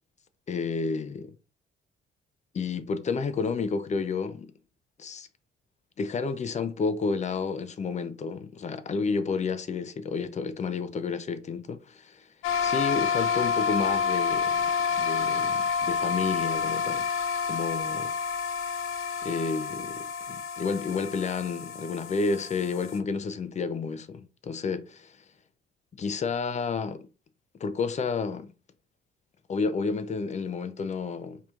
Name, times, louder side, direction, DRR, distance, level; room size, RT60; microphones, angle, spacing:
voice 1, 0.5-1.3 2.5-4.5 5.0-5.3 6.0-12.2 12.6-14.7 15.0-17.1 17.5-18.1 19.2-25.0 26.0-27.0 27.6-28.5 29.5-31.4, left 4 dB, 35° left, 0.5 m, -30 dB
sound 1, 12.4-23.0, left 5 dB, 80° left, 0.5 m, -29 dB
4.7 x 2.9 x 2.4 m
cardioid pair, 95°, 21 cm